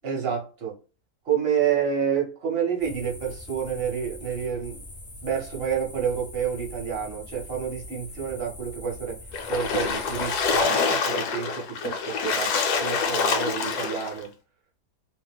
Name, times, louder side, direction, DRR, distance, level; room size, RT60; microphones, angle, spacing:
voice 1, 0.0-0.8 1.2-4.8 5.2-9.2 9.5-12.5 12.8-14.3, right 7 dB, 45° right, 1.0 m, -29 dB
sound 1, 2.8-10.6, left 1 dB, 50° left, 0.4 m, -43 dB
Splash splatter, 9.3-14.2, left 5 dB, 75° left, 1.1 m, -26 dB
2.9 x 2.1 x 3.4 m
omnidirectional pair, 1.8 m